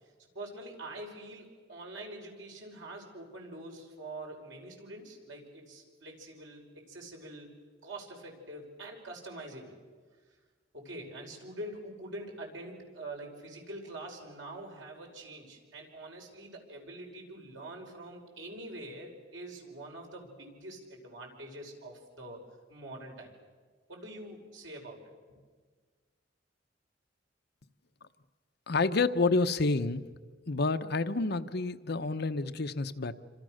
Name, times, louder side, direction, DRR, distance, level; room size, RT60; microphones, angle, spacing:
voice 1, 0.3-7.5 7.8-9.7 10.7-22.4 22.7-23.3 23.9-25.0, right 1 dB, 90° right, 1 dB, 5.7 m, -45 dB
voice 2, 28.7-30.0 30.5-33.1, left 3 dB, 60° left, 9 dB, 0.9 m, -29 dB
27.5 x 26.5 x 6.5 m, 1.5 s
head